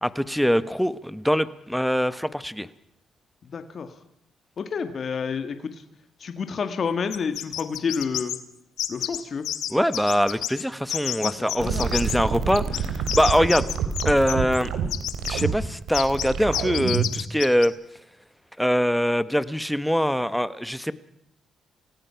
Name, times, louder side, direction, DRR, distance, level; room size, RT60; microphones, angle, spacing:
voice 1, 0.0-2.7 9.7-13.6 14.0-14.7 15.3-17.7 18.6-20.9, equal, ahead, 14 dB, 1.2 m, -23 dB
voice 2, 3.5-3.9 4.6-5.8 6.2-8.3 8.9-9.5 11.2-11.9, left 6 dB, 50° left, 8 dB, 1.9 m, -29 dB
sound 1, 7.1-8.4 8.8-9.2 9.4-10.6 10.9-12.2 12.5-14.6 14.9-15.4 15.9-16.3 16.5-17.7, left 12 dB, 80° left, 1.5 m, -29 dB
sound 2, 11.6-17.2, right 7 dB, 80° right, 3.2 m, -27 dB
28.0 x 17.5 x 5.8 m, 0.79 s
cardioid pair, 90°, 0 cm